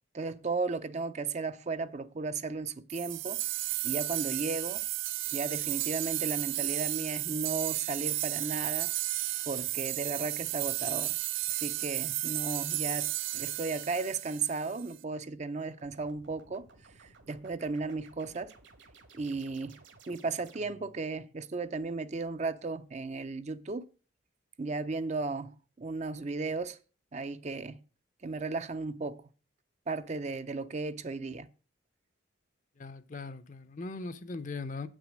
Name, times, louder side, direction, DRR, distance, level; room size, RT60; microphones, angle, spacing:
voice 1, 0.1-3.4 3.8-4.9 5.3-8.9 9.5-11.1 11.5-16.7 17.0-18.5 19.1-23.9 24.6-26.8 27.1-27.8 28.2-29.2 29.9-31.5, right 3 dB, 35° right, 0.5 m, -35 dB
sound 1, 2.9-14.9, right 15 dB, 85° right, 0.6 m, -33 dB
sound 2, 15.8-21.0, right 3 dB, 70° right, 1.6 m, -57 dB
voice 2, 32.8-34.9, left 3 dB, 40° left, 0.6 m, -39 dB
8.0 x 6.2 x 6.2 m
head